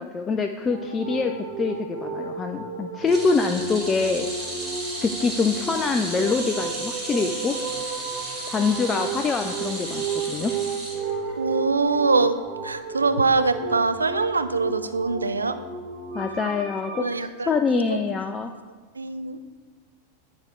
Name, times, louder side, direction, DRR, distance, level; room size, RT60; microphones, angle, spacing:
voice 1, 0.0-4.3 5.0-7.5 8.5-10.5 16.1-18.5, left 4 dB, 20° left, 5 dB, 0.3 m, -25 dB
sound 1, 0.7-17.0, right 4 dB, 55° right, 1.5 m, -33 dB
sound 2, 3.1-11.5 11.9-12.1 13.3-13.4, right 2 dB, 15° right, 2.1 m, -34 dB
voice 2, 11.4-12.4 12.6-15.6 17.0-18.0 19.0-19.4, right 4 dB, 75° right, 10 dB, 0.4 m, -23 dB
9.6 x 4.3 x 3.7 m, 1.4 s
figure-of-eight pair, 90°, 0 cm